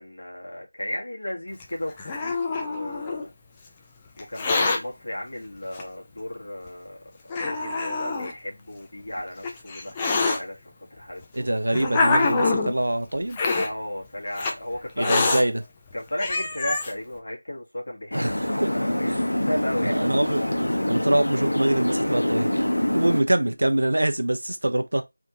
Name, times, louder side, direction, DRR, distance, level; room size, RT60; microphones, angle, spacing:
voice 1, 0.0-3.3 4.2-11.5 13.5-15.3 15.9-19.1 19.5-20.0, left 1 dB, 55° left, 1.5 m, -34 dB
Hiss, 1.6-3.3 4.2-4.8 5.8-5.9 6.7-6.8 7.3-8.3 9.2-10.4 11.2-12.7 13.3-13.7 14.4-14.5 15.0-15.4 15.9-16.0 16.2-16.9, left 3 dB, 10° left, 0.4 m, -25 dB
voice 2, 11.3-13.4 15.0-15.6 18.1-18.7 19.1-19.2 19.8-22.7 22.9-25.0, right 1 dB, 70° right, 0.6 m, -25 dB
sound 1, 18.1-23.2, left 1 dB, 75° left, 0.8 m, -25 dB
3.4 x 2.5 x 2.8 m
figure-of-eight pair, 170°, 0 cm